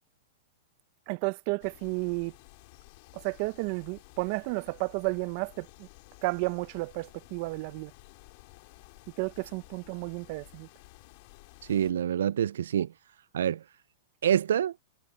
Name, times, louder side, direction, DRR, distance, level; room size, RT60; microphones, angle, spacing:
voice 1, 1.1-2.3 3.1-5.9 6.2-7.9 9.2-10.7, right 27 dB, 50° right, 0.9 m, -32 dB
sound 1, 1.6-11.9, left 25 dB, 50° left, 2.9 m, -54 dB
voice 2, 11.6-12.9 13.3-13.6 14.2-14.7, right 9 dB, 85° right, 0.3 m, -26 dB
hypercardioid pair, 135°, 0 cm